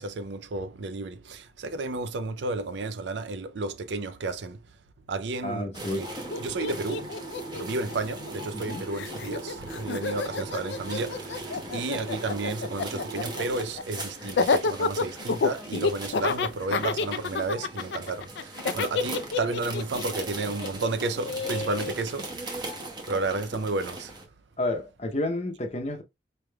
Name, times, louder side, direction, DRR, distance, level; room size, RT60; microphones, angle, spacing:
voice 1, 0.0-4.6 5.1-6.1 6.4-7.1 7.5-22.6 23.1-24.1, right 3 dB, 65° right, 0.5 m, -32 dB
voice 2, 5.4-6.0 8.5-8.8 24.6-26.0, left 1 dB, 35° left, 0.7 m, -30 dB
sound 1, 5.7-24.2, right 2 dB, 25° right, 0.8 m, -39 dB
Laughter, 6.0-6.1 6.3-8.7 8.9-22.0, left 4 dB, 60° left, 0.4 m, -29 dB
4.7 x 3.3 x 2.2 m
head